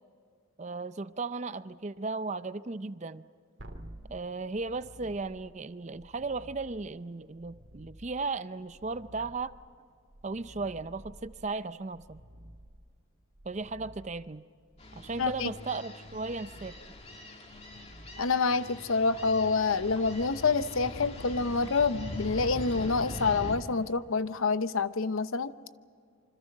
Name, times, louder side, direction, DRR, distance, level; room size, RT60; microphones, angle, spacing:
voice 1, 0.6-3.2 4.1-9.5 10.2-12.2 13.4-14.4 15.0-16.8, right 3 dB, 35° right, 14 dB, 0.5 m, -36 dB
sound 1, 3.6-18.9 22.0-22.1, right 1 dB, 60° right, 2.4 m, -52 dB
sound 2, 14.8-23.6, left 1 dB, 30° left, 2.3 m, -42 dB
voice 2, 15.2-15.5 18.2-25.5, left 4 dB, 75° left, 13 dB, 0.8 m, -27 dB
27.0 x 25.5 x 5.4 m, 2.2 s
head